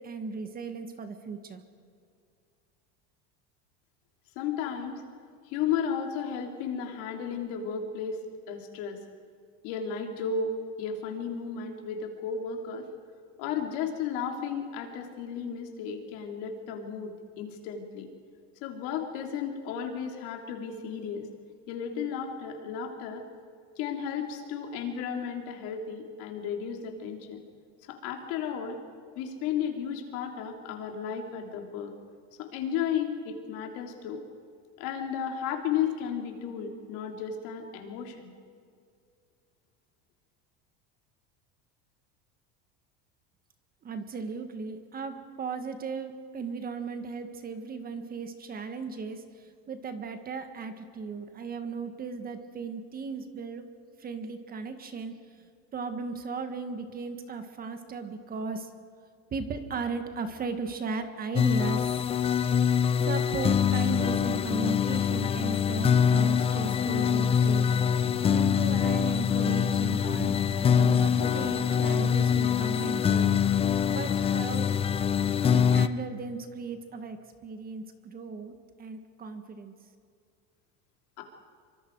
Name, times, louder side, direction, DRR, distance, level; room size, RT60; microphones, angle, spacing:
voice 1, 0.0-1.6 43.8-53.7 54.0-55.2 55.7-58.7 59.3-62.1 63.0-67.7 68.0-73.4 73.9-74.7 75.5-79.7, right 4 dB, 30° right, 7 dB, 1.6 m, -36 dB
voice 2, 4.3-5.0 5.5-8.2 8.5-9.0 9.6-12.9 13.4-18.1 18.6-21.3 21.7-23.2 23.8-27.4 27.9-28.8 29.1-31.9 32.4-34.2 34.8-38.3 81.2-81.3, left 7 dB, 70° left, 2 dB, 3.3 m, -34 dB
sound 1, 61.4-75.9, left 7 dB, 20° left, 0.5 m, -24 dB
sound 2, 66.3-71.4, left 6 dB, 40° left, 5.4 m, -41 dB
26.0 x 24.0 x 4.7 m, 2.2 s
cardioid pair, 140°, 32 cm